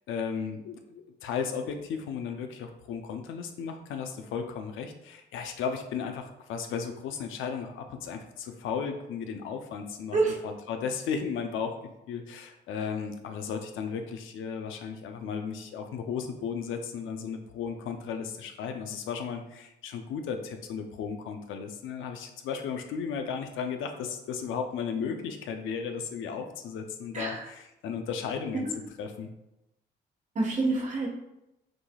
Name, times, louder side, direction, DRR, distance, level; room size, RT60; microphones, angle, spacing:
voice 1, 0.1-10.2 10.4-11.7 12.1-28.7 29.0-29.3, left 6 dB, 85° left, 5 dB, 0.6 m, -35 dB
voice 2, 30.3-31.1, right 3 dB, 35° right, -1 dB, 1.3 m, -27 dB
5.9 x 3.3 x 2.3 m, 0.90 s
cardioid pair, 90°, 20 cm